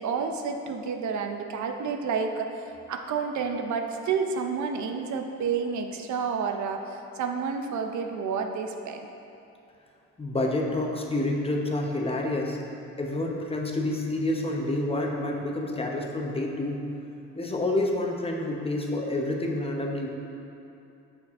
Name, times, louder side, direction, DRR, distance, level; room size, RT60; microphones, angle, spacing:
voice 1, 0.0-2.5 2.9-9.1, right 5 dB, 70° right, 4 dB, 0.6 m, -30 dB
voice 2, 10.2-12.6 13.0-16.8 17.4-20.1, left 1 dB, 20° left, 0 dB, 0.9 m, -28 dB
7.3 x 6.2 x 3.6 m, 2.8 s
cardioid pair, 90°, 30 cm